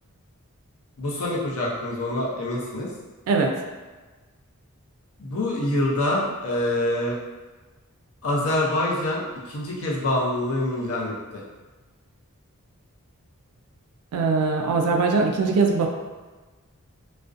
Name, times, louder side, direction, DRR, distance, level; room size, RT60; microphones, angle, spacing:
voice 1, 1.0-2.9 5.2-7.2 8.2-11.4, left 1 dB, 70° left, -5 dB, 0.6 m, -26 dB
voice 2, 14.1-15.9, right 4 dB, 80° right, 2 dB, 0.3 m, -21 dB
2.4 x 2.1 x 2.4 m, 1.3 s
head